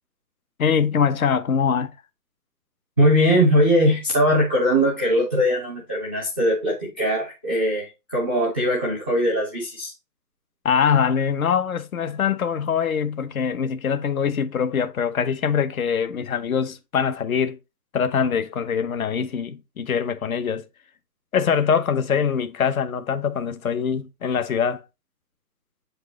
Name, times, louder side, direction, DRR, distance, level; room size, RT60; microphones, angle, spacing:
voice 1, 0.6-1.9 10.6-17.6 17.9-20.6 21.3-24.8, left 7 dB, 55° left, 1.0 m, -23 dB
voice 2, 3.0-9.9, equal, 5° left, 0.5 m, -20 dB
7.5 x 4.8 x 3.0 m
hypercardioid pair, 155°, 50 cm